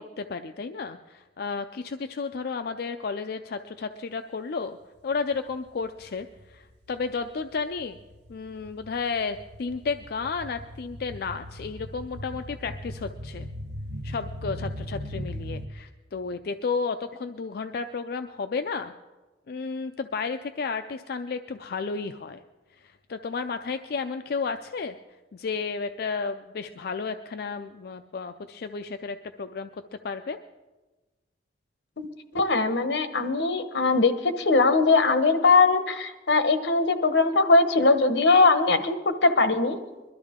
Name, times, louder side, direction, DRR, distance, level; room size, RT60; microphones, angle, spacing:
voice 1, 0.0-4.8 5.0-8.0 8.3-13.5 14.0-18.9 19.5-22.4 22.8-25.0 25.3-29.7 30.0-30.4, left 4 dB, 60° left, 8 dB, 0.4 m, -32 dB
sound 1, 5.2-6.1 6.3-15.7, equal, 70° right, 0.9 m, -39 dB
voice 2, 32.3-39.8, left 3 dB, 85° left, 10 dB, 1.0 m, -21 dB
22.0 x 12.5 x 3.6 m, 1.2 s
head